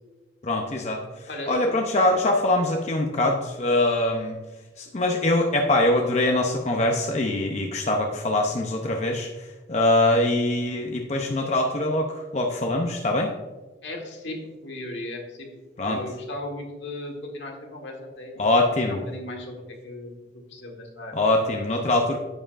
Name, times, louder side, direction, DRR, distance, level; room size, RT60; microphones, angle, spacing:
voice 1, 0.4-1.0 1.5-4.4 4.8-9.3 9.7-13.3 15.8-16.0 18.4-19.0 21.1-22.2, left 1 dB, 35° left, 2 dB, 0.6 m, -23 dB
voice 2, 1.3-1.8 2.1-2.2 13.8-15.5 15.8-18.5 18.9-21.2, left 1 dB, 75° left, 1 dB, 1.5 m, -37 dB
9.7 x 7.6 x 2.5 m, 1.2 s
head